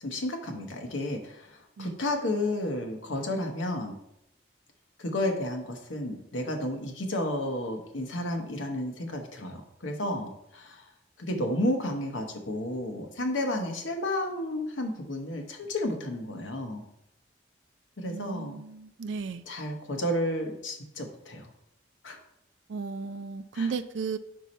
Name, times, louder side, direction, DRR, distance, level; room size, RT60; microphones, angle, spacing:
voice 1, 0.0-3.9 5.0-10.8 11.2-16.8 18.0-18.6 19.5-21.5 22.0-22.2 23.5-23.7, left 1 dB, 85° left, 3 dB, 1.0 m, -32 dB
voice 2, 18.1-19.4 22.7-24.2, right 5 dB, 75° right, 11 dB, 0.4 m, -34 dB
5.4 x 4.7 x 4.2 m, 0.80 s
head